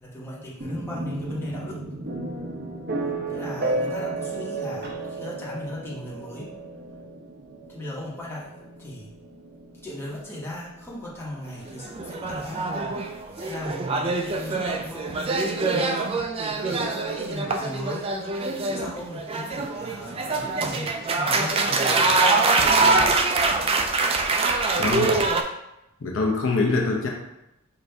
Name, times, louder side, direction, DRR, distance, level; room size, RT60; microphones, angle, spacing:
voice 1, 0.0-1.8 3.3-6.5 7.7-9.1 9.8-12.6 13.4-15.2 15.7-16.2 16.6-18.1 18.6-22.3 22.6-23.1, left 1 dB, 10° left, -7 dB, 1.2 m, -37 dB
sound 1, 0.6-14.4, right 2 dB, 50° right, 0.8 m, -34 dB
sound 2, 11.6-25.4, right 3 dB, 25° right, 0.3 m, -24 dB
voice 2, 24.8-25.2 26.0-27.1, left 3 dB, 70° left, -1 dB, 0.7 m, -24 dB
5.6 x 2.6 x 3.3 m, 0.88 s
head